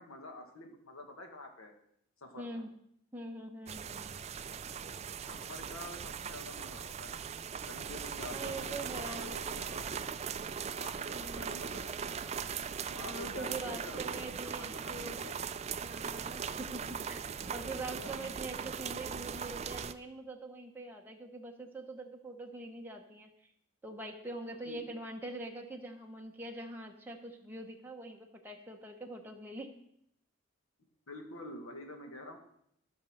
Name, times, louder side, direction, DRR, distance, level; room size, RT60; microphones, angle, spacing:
voice 1, 0.0-1.7 2.2-2.6 5.3-7.2 7.7-10.1 10.7-11.9 12.9-15.5 17.8-18.3 24.7-24.9 31.1-32.4, left 2 dB, 90° left, 4 dB, 1.8 m, -47 dB
voice 2, 2.4-2.7 3.1-4.1 8.3-9.3 11.1-11.6 13.1-15.2 15.8-23.5 23.8-29.7, right 2 dB, 10° right, 0 dB, 1.1 m, -44 dB
sound 1, 3.7-19.9, right 7 dB, 30° right, 0.3 m, -39 dB
14.0 x 5.4 x 6.6 m, 0.73 s
head